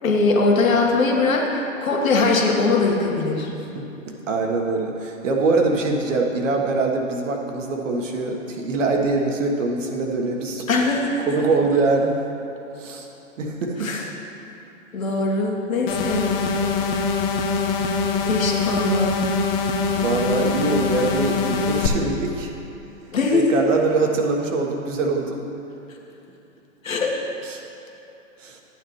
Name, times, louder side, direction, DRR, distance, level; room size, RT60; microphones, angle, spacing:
voice 1, 0.0-3.5 10.7-11.1 13.8-14.0 14.9-16.3 18.2-19.2 23.1-23.6 26.8-27.1, left 3 dB, 75° left, 0 dB, 1.6 m, -21 dB
voice 2, 3.7-10.7 11.3-12.2 12.8-13.1 13.4-13.9 19.9-22.5 23.3-25.5 27.4-27.6 28.4-28.6, right 3 dB, 65° right, 2 dB, 1.4 m, -23 dB
sound 1, 15.9-21.9, left 4 dB, 45° left, 0.9 m, -23 dB
11.5 x 9.0 x 3.1 m, 2.9 s
hypercardioid pair, 115°, 40 cm